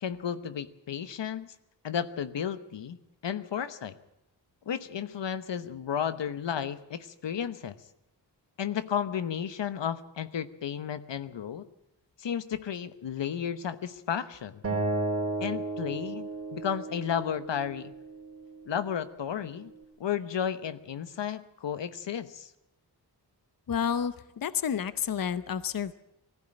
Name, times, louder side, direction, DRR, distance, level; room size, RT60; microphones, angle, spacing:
voice 1, 0.0-1.5 1.8-3.0 3.2-3.9 4.7-7.7 8.6-11.7 12.2-14.6 15.4-17.9 18.7-19.7 20.0-22.5, left 8 dB, 85° left, 12 dB, 1.1 m, -33 dB
Acoustic guitar, 14.6-17.9, right 2 dB, 35° right, 3.4 m, -33 dB
voice 2, 23.7-25.9, left 8 dB, 55° left, 14 dB, 0.8 m, -30 dB
19.5 x 15.0 x 9.0 m, 0.87 s
wide cardioid pair, 145°, 42 cm